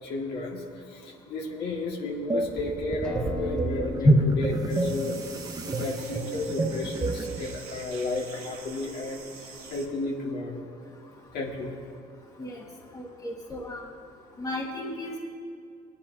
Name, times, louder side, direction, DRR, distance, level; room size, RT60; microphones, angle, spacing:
voice 1, 0.0-0.6 0.9-5.2 5.6-10.6 11.3-11.7, left 2 dB, 70° left, -2 dB, 2.2 m, -33 dB
sound 1, 2.3-7.4, right 2 dB, 20° right, 0.9 m, -31 dB
Acoustic guitar, 3.0-8.2, left 1 dB, 5° left, 2.4 m, -42 dB
sound 2, 4.7-9.9, right 5 dB, 65° right, 1.8 m, -46 dB
voice 2, 12.9-13.9 14.4-15.2, equal, 20° left, -1 dB, 1.9 m, -26 dB
20.5 x 10.5 x 2.8 m, 2.3 s
cardioid pair, 110°, 17 cm